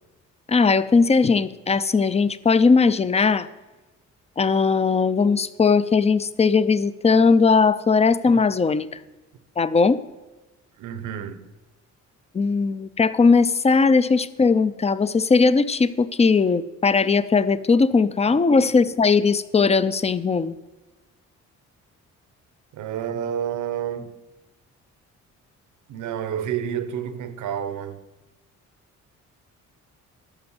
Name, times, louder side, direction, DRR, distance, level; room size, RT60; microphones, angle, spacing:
voice 1, 0.5-3.5 4.4-8.9 9.6-10.0 12.3-20.6, left 4 dB, 20° left, 0.5 m, -19 dB
voice 2, 10.8-11.4 18.7-18.8 22.7-24.2 25.9-28.0, right 9 dB, 80° right, 0.9 m, -29 dB
12.0 x 5.2 x 7.3 m
cardioid pair, 90°, 30 cm